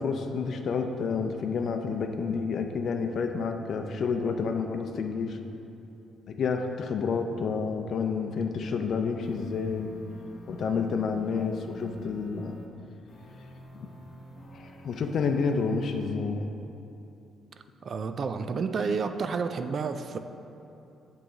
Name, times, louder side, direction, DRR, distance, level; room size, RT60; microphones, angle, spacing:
voice 1, 0.0-5.4 6.3-9.9 10.5-12.6 13.8-13.9 14.5-16.5, left 5 dB, 60° left, 5 dB, 0.5 m, -29 dB
sound 1, 9.2-12.7 13.1-16.1, left 1 dB, 40° left, 0.9 m, -47 dB
voice 2, 17.8-20.2, right 5 dB, 50° right, 9 dB, 0.3 m, -30 dB
7.7 x 3.2 x 5.7 m, 2.8 s
cardioid pair, 90°, 0 cm